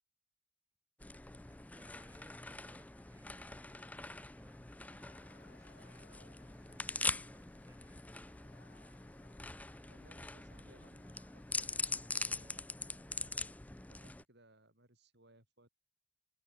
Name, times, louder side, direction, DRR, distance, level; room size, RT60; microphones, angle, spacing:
sound 1, 1.0-14.2, left 3 dB, 5° left, 0.4 m, -43 dB
voice 1, 1.5-8.0, right 1 dB, 15° right, 2.4 m, -67 dB
Crowd, 4.7-12.7, left 4 dB, 50° left, 1.8 m, -69 dB
voice 2, 9.9-13.5 13.9-15.7, right 1 dB, 55° right, 6.7 m, -65 dB
open air
head